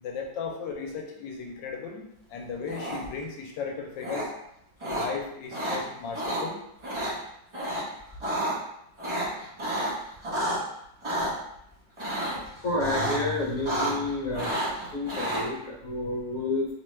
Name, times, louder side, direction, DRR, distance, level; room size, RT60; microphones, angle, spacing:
voice 1, 0.0-4.3 4.8-6.6, left 5 dB, 80° left, 1 dB, 1.2 m, -36 dB
sound 1, 2.7-3.2 4.0-4.2 4.8-5.1 5.5-5.8 6.1-6.4 6.8-7.1 7.5-7.8 8.1-8.5 9.0-10.6 11.0-11.3 12.0-12.5 12.8-13.2 13.5-14.1 14.3-15.4, right 1 dB, 30° right, 0.6 m, -30 dB
voice 2, 12.6-14.5 14.9-16.7, left 2 dB, 60° left, -3 dB, 1.1 m, -29 dB
3.1 x 2.2 x 3.1 m, 0.78 s
omnidirectional pair, 2.0 m